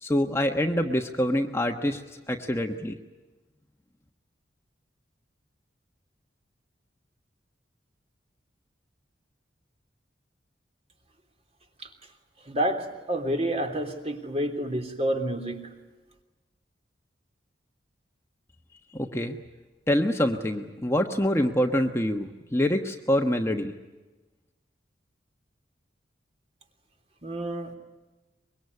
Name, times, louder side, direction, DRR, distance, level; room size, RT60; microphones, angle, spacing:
voice 1, 0.0-3.0 18.9-19.4 19.9-23.7, left 1 dB, 15° left, 4 dB, 1.2 m, -26 dB
voice 2, 12.4-15.8 27.2-27.7, right 1 dB, 35° right, 5 dB, 3.2 m, -29 dB
24.5 x 23.0 x 9.6 m, 1.2 s
head